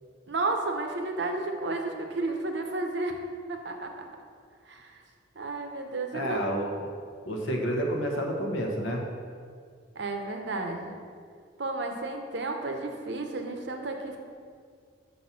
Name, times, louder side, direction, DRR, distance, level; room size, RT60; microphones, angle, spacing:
voice 1, 0.3-3.2 3.5-4.1 4.7-5.0 5.4-6.4 9.9-11.0 11.6-14.2, right 2 dB, 65° right, 4 dB, 0.7 m, -32 dB
voice 2, 6.1-6.9 7.2-9.0, equal, 85° left, 1 dB, 1.0 m, -29 dB
5.5 x 4.2 x 5.8 m, 2.1 s
head